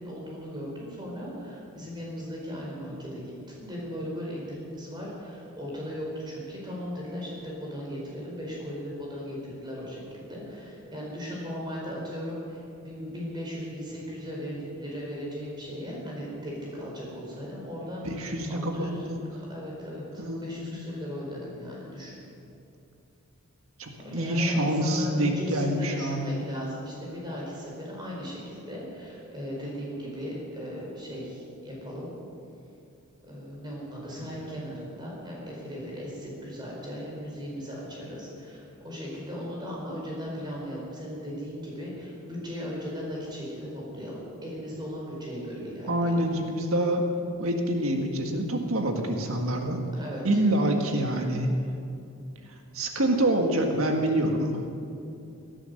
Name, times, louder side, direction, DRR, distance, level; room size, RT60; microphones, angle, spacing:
voice 1, 0.0-3.3 3.6-19.1 19.5-22.2 24.0-32.1 33.2-46.2 50.0-50.4, equal, 20° right, -4 dB, 4.7 m, -37 dB
voice 2, 18.2-19.2 20.2-20.8 23.8-26.4 45.9-47.0 47.4-49.8 50.2-51.5 52.7-54.6, right 1 dB, 70° right, 3 dB, 1.7 m, -26 dB
18.5 x 11.0 x 6.6 m, 2.6 s
head